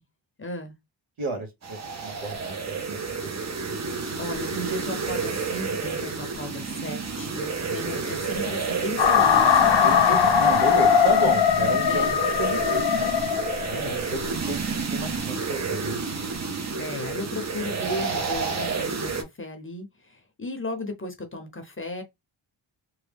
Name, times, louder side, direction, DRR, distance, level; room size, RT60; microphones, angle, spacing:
voice 1, 0.4-0.8 4.2-10.3 11.5-12.2 13.7-14.0 16.7-22.0, left 1 dB, 25° left, 0.7 m, -35 dB
voice 2, 1.2-3.5 9.7-13.1 13.7-16.2, right 3 dB, 75° right, 1.2 m, -33 dB
sound 1, 1.6-19.2, right 4 dB, 35° right, 0.6 m, -30 dB
sound 2, 9.0-14.0, left 8 dB, 65° left, 0.7 m, -20 dB
3.0 x 2.2 x 3.3 m
wide cardioid pair, 115°, 49 cm